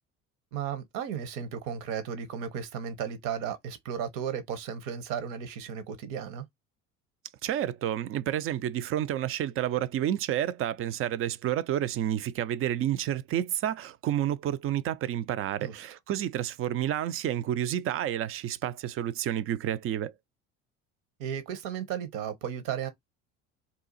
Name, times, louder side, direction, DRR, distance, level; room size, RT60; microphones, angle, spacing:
voice 1, 0.5-6.4 15.6-15.9 21.2-22.9, right 8 dB, 60° right, 0.9 m, -34 dB
voice 2, 7.4-20.1, right 11 dB, 40° right, 0.4 m, -30 dB
2.8 x 2.4 x 3.9 m
hypercardioid pair, 70°, 35 cm